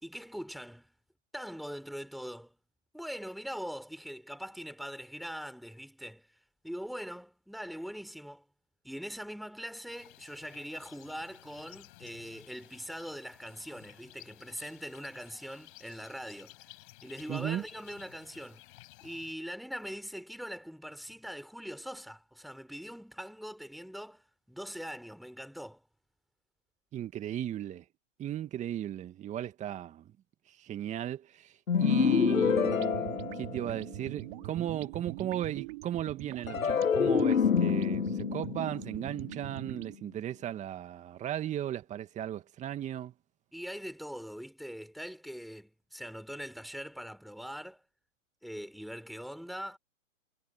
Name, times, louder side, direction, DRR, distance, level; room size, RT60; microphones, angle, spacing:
voice 1, 0.0-0.9 1.3-2.6 2.9-6.3 6.6-8.4 8.8-16.6 17.0-18.7 19.0-25.8 43.5-47.8 48.4-49.8, equal, ahead, 5.2 m, -42 dB
sound 1, 9.9-19.3, left 19 dB, 40° left, 6.6 m, -55 dB
voice 2, 17.3-17.6 26.9-27.8 28.2-30.1 30.5-31.5 31.8-43.1, right 11 dB, 20° right, 2.4 m, -36 dB
sound 2, 31.7-34.1 36.5-39.8, left 7 dB, 90° left, 1.1 m, -28 dB
sound 3, 32.3-40.0, right 22 dB, 40° right, 3.4 m, -43 dB
hypercardioid pair, 130°, 39 cm